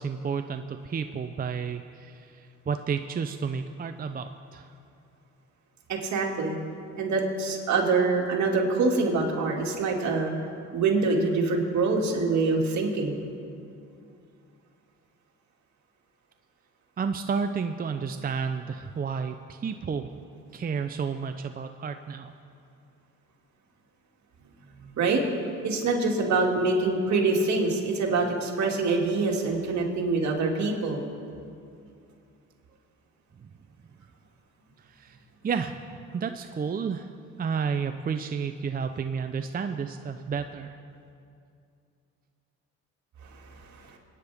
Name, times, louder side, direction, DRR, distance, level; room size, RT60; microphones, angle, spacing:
voice 1, 0.0-4.7 17.0-20.1 20.5-22.3 33.4-33.5 34.9-35.2 35.4-37.1 37.4-40.8, right 6 dB, 30° right, 8 dB, 0.5 m, -31 dB
voice 2, 5.9-6.5 7.0-10.3 10.7-13.2 24.8-25.3 25.6-31.0, right 3 dB, 65° right, 0 dB, 2.4 m, -25 dB
26.5 x 9.8 x 3.5 m, 2.5 s
cardioid pair, 90°, 30 cm